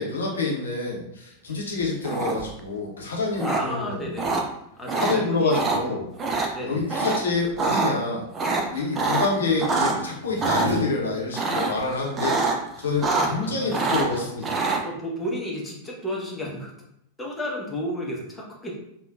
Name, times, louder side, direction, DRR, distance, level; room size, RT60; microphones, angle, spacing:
voice 1, 0.0-4.0 5.0-6.0 6.6-8.3 8.7-12.4 12.8-14.7, left 3 dB, 70° left, -3 dB, 0.8 m, -27 dB
sound 1, 2.0-2.6 3.4-3.6 4.2-4.4 4.9-5.1 5.5-5.8 6.2-6.5 6.9-7.2 7.5-7.9 8.3-10.0 10.4-10.7 11.3-11.8 12.1-12.6 12.8-13.5 13.7-14.8, right 3 dB, 25° right, 0.4 m, -24 dB
voice 2, 3.4-4.4 4.8-6.0 6.5-7.0 13.1-14.2 14.8-16.7 17.2-18.8, equal, 10° left, -3 dB, 0.9 m, -33 dB
sound 2, 10.2-10.8, right 3 dB, 70° right, 0.5 m, -32 dB
3.5 x 2.3 x 2.3 m, 0.77 s
figure-of-eight pair, 90°, 0 cm